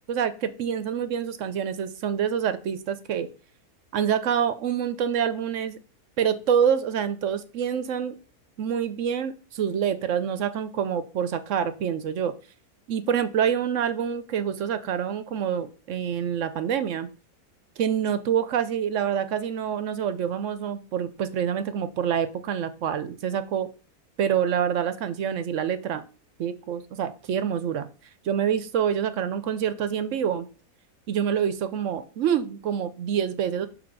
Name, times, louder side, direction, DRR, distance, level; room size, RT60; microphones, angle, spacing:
voice 1, 0.1-3.3 3.9-5.8 6.2-8.2 8.6-12.3 12.9-17.1 17.8-23.7 24.2-26.0 26.4-27.9 28.2-30.5 31.1-33.7, right 8 dB, 65° right, 12 dB, 0.8 m, -26 dB
6.9 x 3.3 x 6.1 m, 0.35 s
omnidirectional pair, 1.6 m